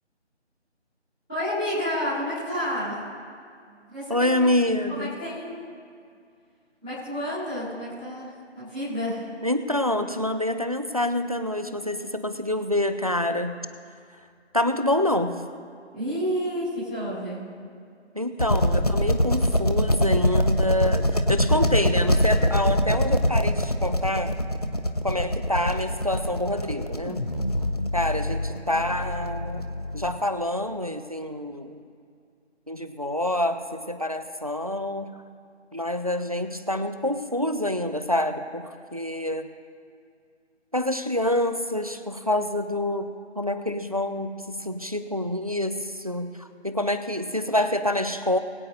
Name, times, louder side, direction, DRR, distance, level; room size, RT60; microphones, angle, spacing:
voice 1, 1.3-3.0 3.9-4.5 4.9-5.6 6.8-9.3 15.9-17.4, equal, 5° right, -19 dB, 1.0 m, -30 dB
voice 2, 4.1-5.1 9.4-13.6 14.5-15.4 18.1-24.3 25.0-27.2 27.9-29.6 29.9-31.8 32.7-35.1 35.7-39.5 40.7-48.4, left 1 dB, 35° right, 9 dB, 0.5 m, -27 dB
sound 1, 18.4-30.2, equal, 35° left, 0.6 m, -24 dB
21.5 x 9.1 x 2.6 m, 2.3 s
figure-of-eight pair, 160°, 35 cm